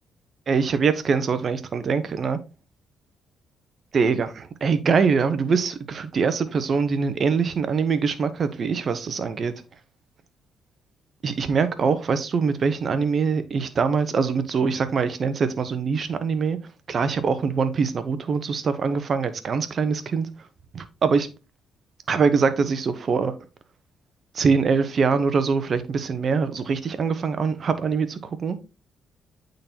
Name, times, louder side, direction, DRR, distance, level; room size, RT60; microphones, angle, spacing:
voice 1, 0.5-2.4 3.9-9.5 11.2-16.6 16.9-20.3 20.7-21.3 22.1-23.3 24.3-28.6, right 5 dB, 50° right, 0.8 m, -23 dB
8.6 x 3.9 x 2.8 m
cardioid pair, 90°, 0 cm